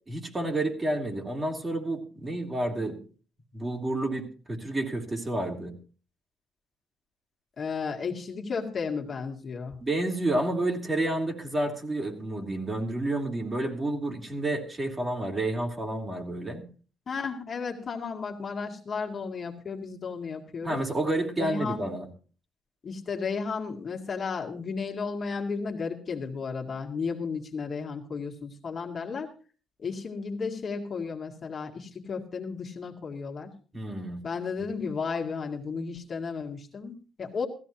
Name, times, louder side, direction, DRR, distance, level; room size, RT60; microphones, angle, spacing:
voice 1, 0.1-3.0 3.5-5.7 9.8-16.6 20.6-22.1 33.7-34.2 34.6-34.7, right 1 dB, 25° right, 1 dB, 3.0 m, -30 dB
voice 2, 7.6-9.8 17.1-20.8 21.4-21.9 22.8-29.3 29.8-33.5 34.2-37.5, left 5 dB, 45° left, 1 dB, 2.0 m, -33 dB
16.0 x 14.5 x 2.9 m, 0.37 s
cardioid pair, 90°, 0 cm